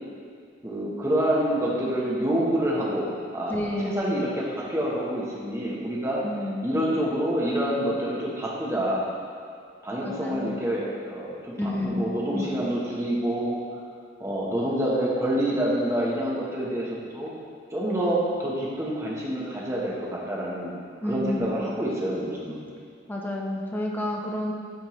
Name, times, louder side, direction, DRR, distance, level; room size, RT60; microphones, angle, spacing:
voice 1, 0.6-3.6 3.8-6.2 6.6-9.1 9.8-13.6 14.2-17.3 17.7-20.7 21.0-22.6, right 1 dB, 15° right, -5 dB, 1.0 m, -27 dB
voice 2, 3.5-4.0 6.2-6.7 10.0-10.6 11.6-12.5 21.0-21.5 23.1-24.5, left 1 dB, 10° left, -1 dB, 0.6 m, -30 dB
8.7 x 4.3 x 3.1 m, 2.2 s
head